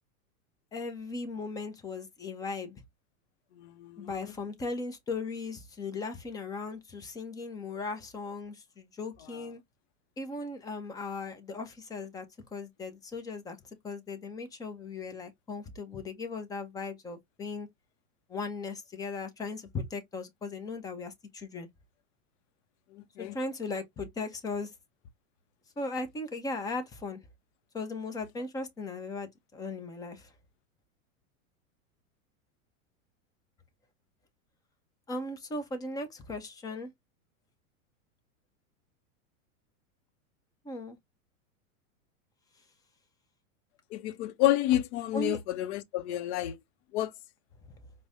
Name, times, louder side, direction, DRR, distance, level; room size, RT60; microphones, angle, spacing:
voice 1, 0.7-2.8 4.0-9.6 10.2-12.3 12.5-13.6 13.8-17.7 18.3-21.7 23.2-24.7 25.8-27.2 27.7-30.3 35.1-36.9 40.6-41.0 45.1-45.4, left 3 dB, 10° left, 0.4 m, -37 dB
voice 2, 3.6-4.3 22.9-23.4 43.9-46.6 46.9-47.1, left 13 dB, 50° left, 0.6 m, -30 dB
4.6 x 2.1 x 2.6 m
hypercardioid pair, 130°, 43 cm